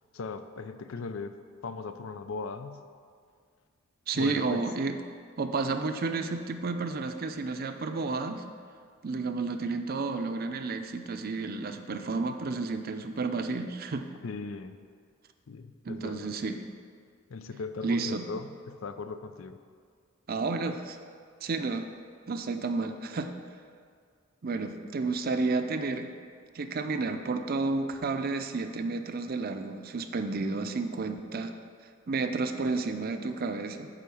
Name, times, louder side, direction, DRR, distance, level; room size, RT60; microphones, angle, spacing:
voice 1, 0.1-1.4 1.6-2.8 4.1-4.7 14.2-14.8 15.5-16.3 17.3-19.6, left 4 dB, 85° left, 10 dB, 0.5 m, -38 dB
voice 2, 4.1-5.0 5.4-8.4 9.0-14.1 15.8-16.6 17.8-18.3 20.3-21.0 21.4-21.9 22.3-23.3 24.4-26.1 26.5-31.5 32.1-33.9, right 3 dB, 50° right, 7 dB, 0.5 m, -31 dB
9.1 x 3.8 x 7.0 m, 2.1 s
head